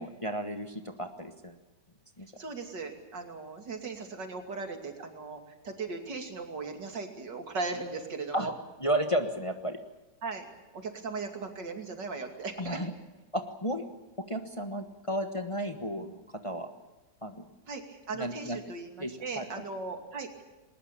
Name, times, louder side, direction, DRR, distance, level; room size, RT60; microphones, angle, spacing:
voice 1, 0.0-1.6 2.2-2.3 8.3-8.5 8.8-9.8 12.6-12.9 13.3-13.8 14.3-16.7 17.2-17.5 18.1-18.6 19.0-19.6, right 1 dB, 20° left, 6 dB, 1.2 m, -33 dB
voice 2, 2.4-8.5 10.2-10.4 10.7-12.8 17.7-20.4, right 4 dB, 80° right, 5 dB, 3.3 m, -38 dB
21.0 x 19.5 x 8.7 m, 1.1 s
omnidirectional pair, 1.9 m